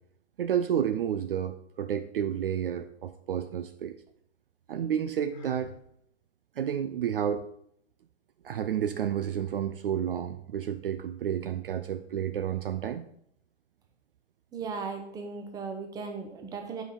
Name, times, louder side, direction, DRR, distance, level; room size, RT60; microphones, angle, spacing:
voice 1, 0.4-4.0 4.7-5.7 6.6-7.5 8.4-13.1, right 9 dB, 50° right, 10 dB, 0.5 m, -30 dB
Sigh, 5.3-5.8, left 3 dB, 40° left, 1.5 m, -47 dB
voice 2, 14.5-16.8, right 5 dB, 10° right, 4 dB, 0.8 m, -37 dB
8.0 x 5.1 x 5.7 m, 0.70 s
figure-of-eight pair, 130°, 37 cm